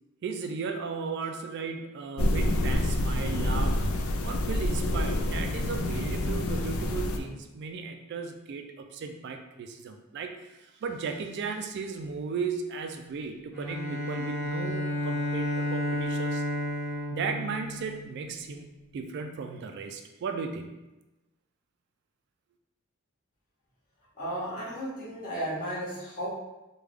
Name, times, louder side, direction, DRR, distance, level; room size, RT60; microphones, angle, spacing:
voice 1, 0.2-3.8 4.2-16.4 17.1-18.7 18.9-20.7, right 5 dB, 55° right, 5 dB, 0.3 m, -36 dB
sound 1, 2.2-7.2, left 1 dB, 90° left, 0.4 m, -27 dB
Bowed string instrument, 13.5-18.3, left 1 dB, 5° left, 1.4 m, -31 dB
voice 2, 24.1-26.3, equal, 40° left, -9 dB, 1.4 m, -34 dB
3.2 x 2.3 x 3.4 m, 1.0 s
head